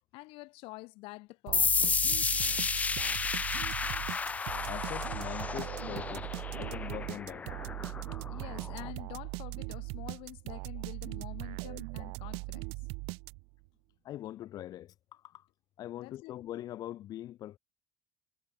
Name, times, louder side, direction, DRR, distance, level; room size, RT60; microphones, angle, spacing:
voice 1, 0.1-2.2 3.0-3.6 8.3-12.7 16.0-16.3, left 23 dB, 60° left, 6.7 m, -47 dB
sound 1, 1.5-8.9, left 5 dB, 15° left, 0.5 m, -32 dB
sound 2, 1.5-13.7, right 32 dB, 65° right, 0.4 m, -40 dB
voice 2, 4.7-6.3 6.6-7.5 14.0-15.5 15.8-17.6, left 13 dB, 40° left, 1.3 m, -42 dB
cardioid pair, 170°, 10 cm